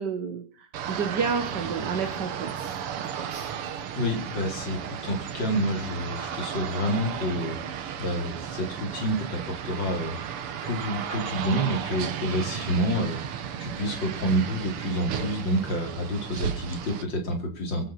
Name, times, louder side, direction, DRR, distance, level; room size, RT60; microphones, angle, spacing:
voice 1, 0.0-3.5, right 6 dB, 55° right, 7 dB, 1.9 m, -31 dB
sound 1, 0.7-17.0, right 8 dB, 90° right, 2.2 m, -34 dB
voice 2, 4.0-7.6 8.0-10.2 10.6-13.2 13.6-17.9, equal, 55° left, 3 dB, 3.9 m, -28 dB
23.0 x 7.9 x 5.9 m, 0.40 s
omnidirectional pair, 2.4 m